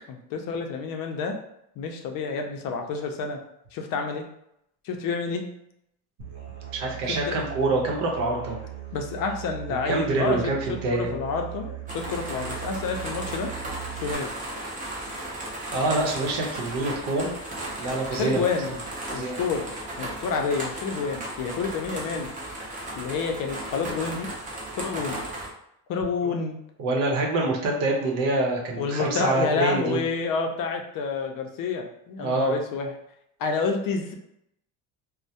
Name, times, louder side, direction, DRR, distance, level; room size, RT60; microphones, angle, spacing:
voice 1, 0.1-1.4 1.8-3.4 3.7-4.2 4.8-5.5 7.1-7.4 8.9-13.5 14.0-14.3 18.1-18.7 19.1-19.7 20.0-22.3 22.9-24.3 24.7-25.2 25.9-26.6 28.8-32.9 33.4-34.1, left 5 dB, 55° left, 3 dB, 0.5 m, -29 dB
Musical instrument, 6.2-14.1, right 12 dB, 45° right, 0.9 m, -39 dB
voice 2, 6.7-8.6 9.8-11.2 15.7-17.4 17.8-18.4 19.1-19.4 26.2-26.3 26.8-30.0 32.2-32.6, right 2 dB, 90° right, -1 dB, 0.7 m, -26 dB
sound 1, 11.9-25.5, right 1 dB, 20° right, 0.5 m, -35 dB
2.2 x 2.0 x 2.7 m, 0.77 s
cardioid pair, 125°, 40 cm